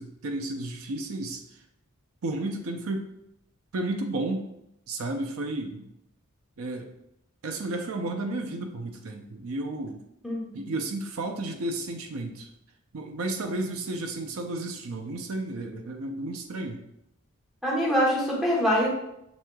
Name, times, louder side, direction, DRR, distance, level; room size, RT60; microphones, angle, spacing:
voice 1, 0.0-1.4 2.2-3.0 3.7-4.5 4.9-5.9 6.6-6.9 7.4-10.0 10.5-12.5 12.9-16.8, right 2 dB, 75° right, 4 dB, 0.5 m, -32 dB
voice 2, 10.2-10.7 17.6-18.9, equal, ahead, -4 dB, 1.0 m, -24 dB
6.1 x 3.6 x 2.3 m, 0.82 s
head